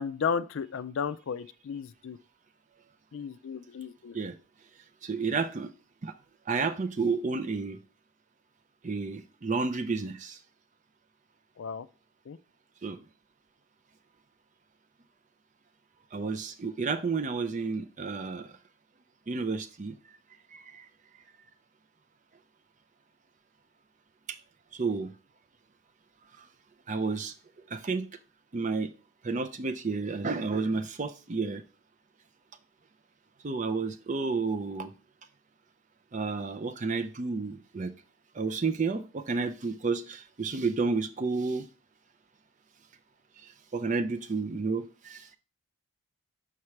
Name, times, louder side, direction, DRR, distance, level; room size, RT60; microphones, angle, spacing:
voice 1, 0.0-2.2 3.1-4.2 11.6-11.9 12.3-12.4, left 6 dB, 65° left, 0.4 m, -34 dB
voice 2, 5.0-5.7 6.0-6.1 6.5-7.8 8.8-10.4 12.8-13.0 16.1-18.5 19.3-20.0 20.5-20.9 24.3-24.4 24.7-25.1 26.4-26.5 26.9-27.3 27.7-28.1 28.5-28.9 29.2-31.6 33.4-34.9 36.1-37.9 38.3-41.7 43.4-45.3, right 4 dB, 35° right, 0.4 m, -31 dB
5.9 x 5.8 x 3.2 m
head